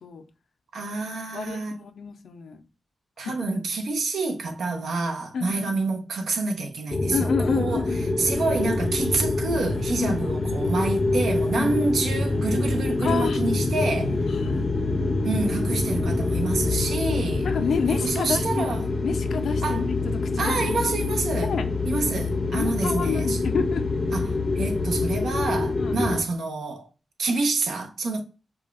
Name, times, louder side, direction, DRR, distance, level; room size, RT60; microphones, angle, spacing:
voice 1, 0.7-1.8 3.2-7.8 8.2-14.2 15.2-17.5 17.9-18.8 19.6-19.8 20.4-21.5 21.9-23.4 24.1-26.9 27.2-28.2, right 3 dB, 85° right, 0.8 m, -27 dB
voice 2, 1.3-2.6 3.2-3.3 5.3-5.7 7.1-8.0 10.0-10.4 11.6-11.7 13.0-13.4 14.4-14.7 17.4-18.7 19.0-20.8 21.5-21.7 22.5-23.8 25.8-26.0, left 5 dB, 80° left, 0.5 m, -29 dB
sound 1, 6.9-26.2, left 3 dB, 30° left, 0.5 m, -26 dB
4.9 x 2.3 x 2.4 m
wide cardioid pair, 120°, 0 cm